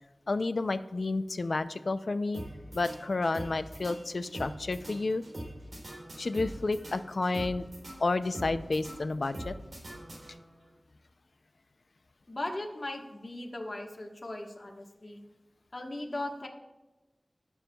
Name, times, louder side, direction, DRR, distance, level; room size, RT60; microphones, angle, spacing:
voice 1, 0.3-2.4 2.7-5.2 6.2-7.7 8.0-9.6, left 3 dB, 75° left, 12 dB, 0.4 m, -30 dB
sound 1, 2.3-10.7, right 1 dB, 70° right, 3.2 m, -43 dB
voice 2, 12.3-15.2 15.7-16.5, left 1 dB, 45° left, 1 dB, 1.3 m, -38 dB
19.0 x 7.0 x 2.3 m, 1.1 s
wide cardioid pair, 70°, 0 cm